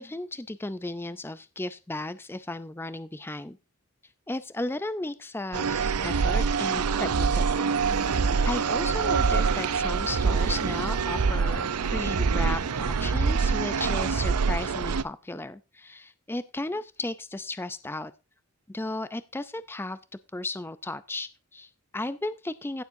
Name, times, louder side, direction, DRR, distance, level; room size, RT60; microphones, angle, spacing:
voice 1, 0.0-3.6 4.3-18.1 18.7-20.0 20.3-22.8, left 2 dB, 10° left, 13 dB, 0.4 m, -35 dB
sound 1, 5.5-15.0, right 5 dB, 90° right, 0.6 m, -25 dB
sound 2, 7.9-13.1, left 1 dB, 30° left, 1.5 m, -46 dB
16.0 x 7.1 x 2.7 m, 0.29 s
head